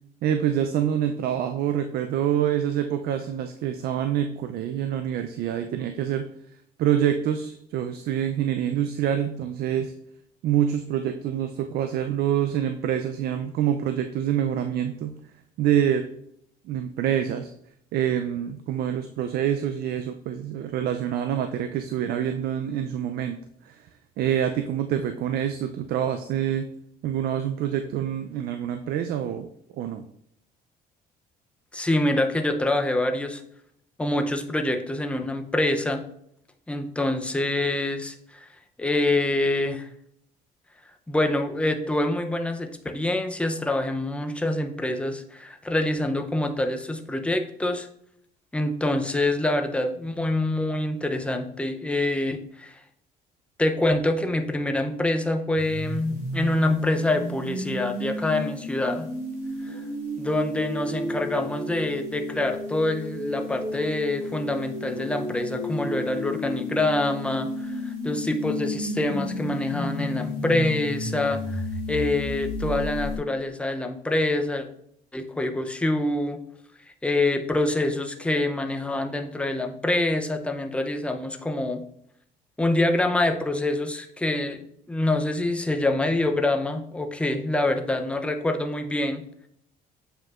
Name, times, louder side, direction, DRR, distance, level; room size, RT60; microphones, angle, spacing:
voice 1, 0.2-6.3 6.8-9.9 10.4-15.1 15.6-16.1 16.7-17.5 17.9-23.4 23.7-23.8 24.2-26.7 27.0-29.5 29.8-30.0, right 10 dB, 70° right, 8 dB, 0.4 m, -26 dB
voice 2, 31.7-33.4 34.0-36.0 36.7-38.5 38.8-39.9 41.1-47.9 48.5-52.8 53.6-59.1 59.6-59.8 60.2-71.6 71.9-74.7 75.1-76.4 77.0-81.8 82.6-84.6 84.9-89.2, left 1 dB, 5° left, 5 dB, 0.6 m, -26 dB
sound 1, 55.6-73.2, left 2 dB, 50° right, 2.6 m, -32 dB
7.6 x 5.1 x 2.4 m, 0.71 s
cardioid pair, 110°, 17 cm